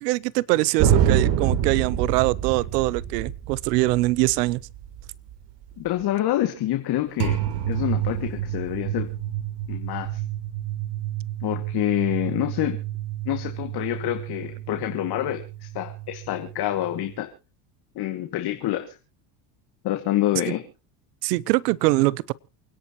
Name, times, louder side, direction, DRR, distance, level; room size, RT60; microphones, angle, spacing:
voice 1, 0.0-4.6 21.2-22.3, right 20 dB, 90° right, 0.8 m, -23 dB
sound 1, 0.8-5.9 7.2-17.2, right 10 dB, 60° right, 3.3 m, -28 dB
voice 2, 5.8-7.4 7.7-9.1 9.7-10.1 11.4-12.8 13.3-17.3 18.0-18.9 19.8-20.6, left 13 dB, 55° left, 2.3 m, -27 dB
29.0 x 10.5 x 3.0 m
supercardioid pair, 110°, 46 cm